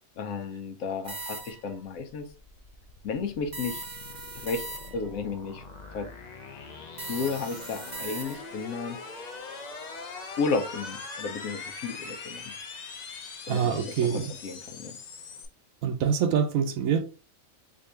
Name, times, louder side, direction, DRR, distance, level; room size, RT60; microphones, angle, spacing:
voice 1, 0.2-2.3 3.0-3.8 4.4-4.6 4.9-5.6 5.9-6.1 7.1-9.0 10.4-12.5 13.5-15.0, left 4 dB, 85° left, 1.1 m, -33 dB
sound 1, 1.0-1.8 3.5-5.2 7.0-8.6, right 3 dB, 45° right, 0.9 m, -39 dB
sound 2, 1.9-15.5, left 4 dB, 70° left, 0.4 m, -42 dB
voice 2, 13.5-14.3 15.8-17.0, right 7 dB, 90° right, 1.1 m, -25 dB
3.6 x 2.6 x 3.3 m
omnidirectional pair, 1.4 m